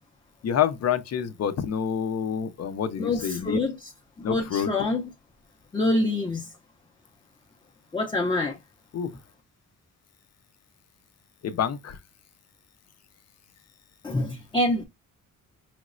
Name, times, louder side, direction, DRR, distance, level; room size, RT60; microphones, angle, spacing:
voice 1, 0.4-3.6 4.2-4.7 8.9-9.1 11.4-12.0, left 8 dB, 50° left, 0.6 m, -27 dB
voice 2, 3.0-3.9 4.2-5.1 5.7-6.5 7.9-8.6 14.0-14.8, left 2 dB, 15° left, 0.6 m, -26 dB
5.1 x 3.0 x 2.5 m
cardioid pair, 150°, 32 cm